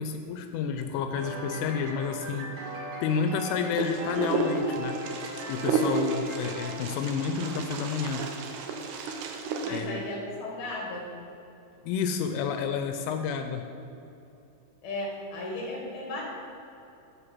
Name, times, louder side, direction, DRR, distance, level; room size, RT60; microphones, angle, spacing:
voice 1, 0.0-5.0 5.5-8.3 9.1-9.3 9.7-10.0 11.8-13.6, left 6 dB, 85° left, 6 dB, 3.1 m, -30 dB
sound 1, 1.2-7.8, equal, 55° right, 2.9 m, -40 dB
Wind, 3.8-9.8, right 4 dB, 80° right, 2.4 m, -32 dB
voice 2, 9.6-11.1 14.8-16.2, left 1 dB, 50° left, -2 dB, 2.7 m, -35 dB
7.8 x 6.6 x 7.4 m, 2.8 s
omnidirectional pair, 5.6 m